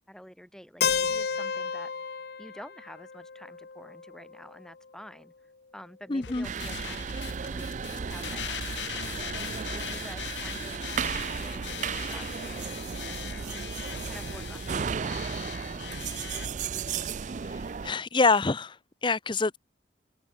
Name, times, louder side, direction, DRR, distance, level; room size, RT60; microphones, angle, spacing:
voice 1, 0.1-1.9 2.4-9.3 9.7-11.0 11.4-13.7 14.1-15.4, equal, 5° left, 5.8 m, -49 dB
Keyboard (musical), 0.8-4.7, left 6 dB, 60° left, 0.8 m, -32 dB
voice 2, 6.1-6.5 17.4-18.8 19.0-19.6, left 4 dB, 30° left, 0.7 m, -26 dB
sound 1, 6.2-16.5, left 10 dB, 90° left, 0.7 m, -40 dB
sound 2, 6.4-17.9, right 6 dB, 45° right, 0.4 m, -34 dB
head